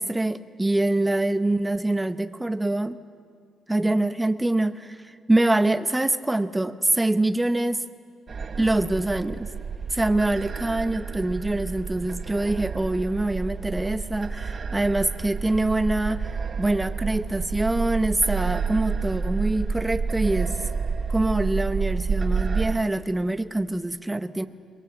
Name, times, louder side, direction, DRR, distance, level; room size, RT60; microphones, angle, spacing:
voice 1, 0.0-3.0 3.7-7.9 8.6-9.5 9.9-16.3 16.6-20.6 21.1-24.5, right 2 dB, 10° right, 11 dB, 0.9 m, -24 dB
sound 1, 8.3-22.8, right 5 dB, 45° right, 1.1 m, -29 dB
22.5 x 21.0 x 8.0 m, 2.2 s
cardioid pair, 90°, 0 cm